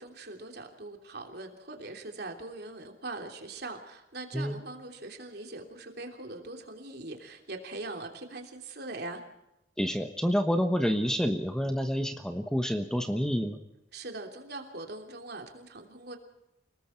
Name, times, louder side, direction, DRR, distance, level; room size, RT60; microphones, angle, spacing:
voice 1, 0.0-9.2 13.9-16.2, right 2 dB, 55° right, 3 dB, 3.2 m, -41 dB
voice 2, 9.8-13.6, equal, 5° left, 7 dB, 1.1 m, -28 dB
29.5 x 19.5 x 4.6 m, 0.89 s
head